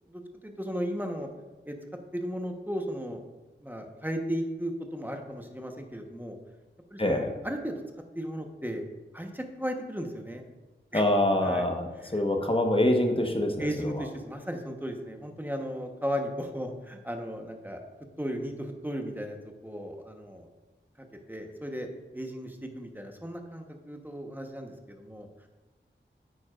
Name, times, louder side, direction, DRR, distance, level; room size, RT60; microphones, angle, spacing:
voice 1, 0.1-1.3 1.7-1.8 2.1-3.2 3.6-6.4 6.9-7.8 8.1-8.9 9.1-10.4 10.9-11.0 11.4-11.6 12.0-12.2 13.6-17.8 18.2-19.4 19.6-20.5 21.0-21.9 22.1-25.3, equal, 10° right, 3 dB, 1.1 m, -35 dB
voice 2, 7.0-7.3 10.9-14.0, left 1 dB, 25° left, 3 dB, 1.2 m, -25 dB
9.8 x 8.5 x 2.5 m, 1.2 s
wide cardioid pair, 50°, 20 cm